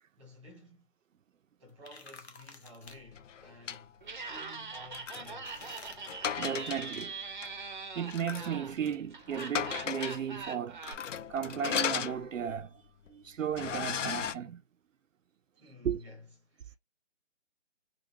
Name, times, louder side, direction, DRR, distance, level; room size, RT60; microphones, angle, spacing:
voice 1, 0.2-0.9 1.6-5.6 15.5-16.8, left 1 dB, ahead, 0.8 m, -53 dB
sound 1, 1.7-3.0 5.5-6.0, left 4 dB, 60° left, 0.9 m, -50 dB
sound 2, 3.1-3.8 4.7-7.1 7.4-7.5 8.1-8.6 8.9-9.0 9.3-10.3 10.8-12.6 13.1-13.2 13.5-14.3, left 8 dB, 75° left, 0.5 m, -36 dB
Laughter, 4.0-10.9, right 4 dB, 40° right, 0.6 m, -42 dB
voice 2, 6.4-7.2 7.9-11.0 11.3-12.8 13.1-14.6 15.8-16.0, right 8 dB, 80° right, 0.6 m, -35 dB
3.9 x 2.3 x 2.8 m
figure-of-eight pair, 160°, 38 cm